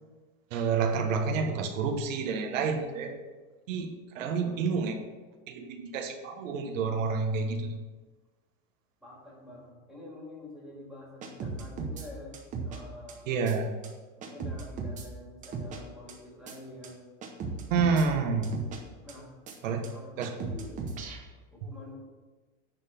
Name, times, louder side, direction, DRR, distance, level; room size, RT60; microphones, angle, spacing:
voice 1, 0.5-3.2 3.7-4.9 5.5-7.8 13.3-13.7 17.7-18.5 19.6-19.8 20.2-20.3, right 5 dB, 75° right, 3 dB, 1.4 m, -29 dB
voice 2, 4.1-4.6 9.0-13.3 14.2-17.0 19.0-19.3 19.6-20.8 21.5-22.0, left 1 dB, ahead, -5 dB, 2.3 m, -48 dB
sound 1, 11.2-12.1 12.3-12.8 13.1-13.2 13.5-13.6 13.8-13.9 14.2-15.1 15.4-15.8 16.1-16.2 16.5-16.6 16.8-16.9 17.2-18.1 18.4-18.8 19.1-19.2 19.5-19.6 19.8-19.9 20.2-21.2, right 4 dB, 20° right, 0.9 m, -36 dB
10.5 x 4.1 x 7.0 m, 1.3 s
supercardioid pair, 165°, 39 cm